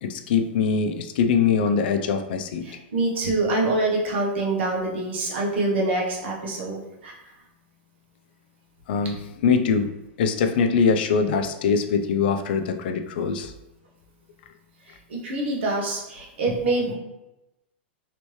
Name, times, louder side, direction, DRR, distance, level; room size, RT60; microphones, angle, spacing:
voice 1, 0.0-2.6 8.9-9.2 9.4-9.9 10.2-13.5, left 6 dB, 55° left, 6 dB, 0.4 m, -22 dB
voice 2, 2.6-7.2 15.1-16.9, right 2 dB, 70° right, -2 dB, 1.0 m, -25 dB
3.2 x 3.0 x 3.1 m, 0.96 s
supercardioid pair, 160°, 6 cm